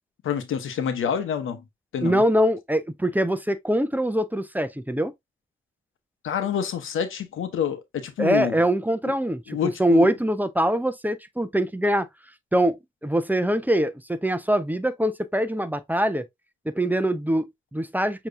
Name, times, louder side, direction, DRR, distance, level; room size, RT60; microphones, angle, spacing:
voice 1, 0.2-1.6 1.9-2.2 6.2-8.6 9.5-10.1, left 8 dB, 90° left, 0.8 m, -27 dB
voice 2, 2.0-5.1 8.2-12.1 12.5-16.3 16.7-18.3, right 1 dB, 10° right, 0.7 m, -23 dB
6.6 x 3.0 x 2.5 m
cardioid pair, 50°, 20 cm